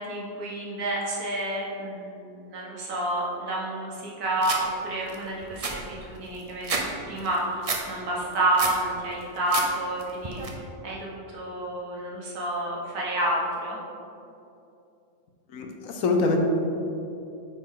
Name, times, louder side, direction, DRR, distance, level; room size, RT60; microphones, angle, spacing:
voice 1, 0.0-13.8, right 1 dB, 75° right, -4 dB, 1.8 m, -29 dB
sound 1, 4.4-4.6 5.1-5.2 5.4-6.9 7.2-7.8 8.2-8.8 9.2-9.7 10.0-10.5, right 4 dB, 45° right, 0.4 m, -30 dB
voice 2, 15.5-16.4, left 3 dB, 65° left, 3 dB, 1.1 m, -25 dB
8.8 x 4.4 x 3.7 m, 2.7 s
omnidirectional pair, 1.6 m